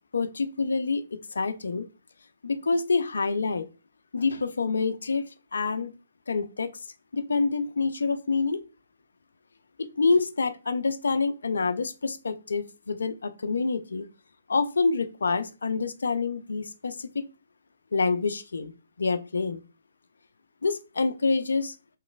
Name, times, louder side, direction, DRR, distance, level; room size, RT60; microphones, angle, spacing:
voice 1, 0.1-1.0 1.3-1.9 2.4-3.7 4.1-5.9 6.3-6.7 7.1-8.6 9.8-14.1 14.5-17.3 17.9-18.7 19.0-19.6 20.6-21.7, left 4 dB, 70° left, 10 dB, 0.3 m, -27 dB
3.0 x 2.9 x 2.3 m, 0.32 s
figure-of-eight pair, 130°, 0 cm